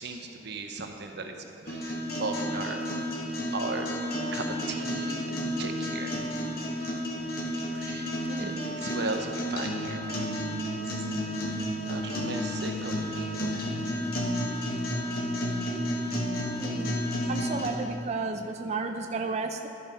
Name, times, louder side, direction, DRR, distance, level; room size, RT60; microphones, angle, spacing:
voice 1, 0.0-1.3 1.7-2.8 3.5-3.9 4.3-6.1 7.7-8.1 8.4-10.3 11.9-13.6, right 3 dB, 60° right, 4 dB, 0.9 m, -36 dB
sound 1, 1.7-17.7, equal, 55° left, 1.3 m, -31 dB
voice 2, 16.6-17.0 17.3-19.7, right 4 dB, 35° right, 5 dB, 0.4 m, -33 dB
12.5 x 5.4 x 5.5 m, 2.6 s
head